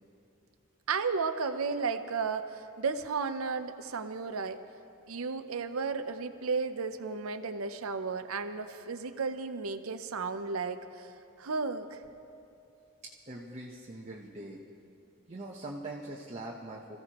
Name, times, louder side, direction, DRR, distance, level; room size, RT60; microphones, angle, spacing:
voice 1, 0.9-4.6 5.1-11.1 11.4-12.0, right 4 dB, 80° right, 9 dB, 0.7 m, -33 dB
voice 2, 13.3-14.6 15.3-17.0, right 2 dB, 35° right, -3 dB, 1.0 m, -42 dB
26.5 x 15.5 x 3.0 m, 2.8 s
head